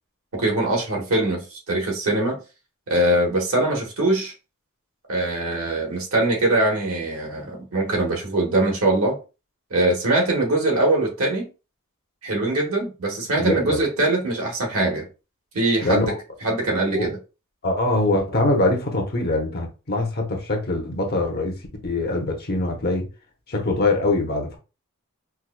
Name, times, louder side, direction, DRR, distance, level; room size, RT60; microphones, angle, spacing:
voice 1, 0.3-2.4 2.9-4.3 5.1-9.2 9.7-11.5 12.2-15.1 15.5-16.1 16.4-17.2, right 2 dB, 65° right, 1.3 m, -22 dB
voice 2, 13.4-13.8 15.8-16.2 16.9-17.1 17.6-21.6 21.8-23.1 23.5-24.6, left 2 dB, 45° left, 0.9 m, -23 dB
4.6 x 2.2 x 2.2 m
head